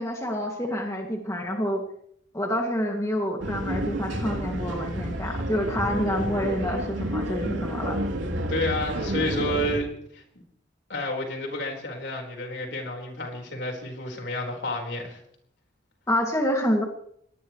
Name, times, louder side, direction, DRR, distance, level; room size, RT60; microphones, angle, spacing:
voice 1, 0.0-1.8 2.3-8.0 16.1-16.8, equal, 15° left, 1 dB, 2.3 m, -27 dB
sound 1, 3.4-9.8, right 1 dB, 85° right, 3.1 m, -30 dB
voice 2, 8.5-10.2 10.9-15.2, left 1 dB, 65° left, 1 dB, 4.5 m, -30 dB
23.0 x 18.5 x 3.2 m, 0.69 s
head